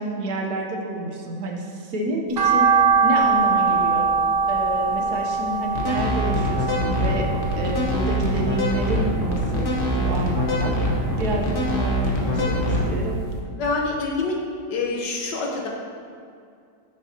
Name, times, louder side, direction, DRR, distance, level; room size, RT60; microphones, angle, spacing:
voice 1, 0.0-2.7 3.0-4.1 4.5-7.2 7.5-10.7 11.2-13.2, right 1 dB, 65° right, 1 dB, 1.4 m, -29 dB
sound 1, 2.4-8.7 9.0-10.2 10.5-12.0 12.3-12.4 12.9-13.0 13.2-13.3, right 5 dB, 40° right, 1.0 m, -22 dB
sound 2, 5.7-13.0, equal, 35° left, 1.1 m, -23 dB
voice 2, 12.2-12.6 13.6-14.4 14.7-15.7, left 3 dB, 85° left, -1 dB, 1.7 m, -27 dB
10.0 x 6.5 x 2.9 m, 2.3 s
omnidirectional pair, 1.9 m